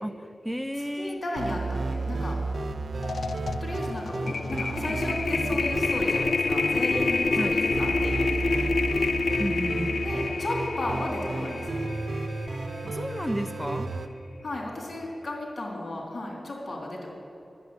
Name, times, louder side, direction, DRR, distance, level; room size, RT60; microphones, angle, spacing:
voice 1, 0.0-1.2 7.3-7.6 9.4-10.0 12.8-13.9, equal, ahead, 9 dB, 0.5 m, -32 dB
voice 2, 1.0-2.4 3.6-8.6 10.0-11.8 14.4-17.1, left 1 dB, 60° left, -2 dB, 3.4 m, -34 dB
sound 1, 1.4-14.1, right 3 dB, 75° right, 0.8 m, -32 dB
sound 2, 2.5-2.7 3.0-13.3, left 4 dB, 80° left, 0.5 m, -28 dB
11.5 x 7.8 x 9.7 m, 2.7 s
cardioid pair, 50°, 0 cm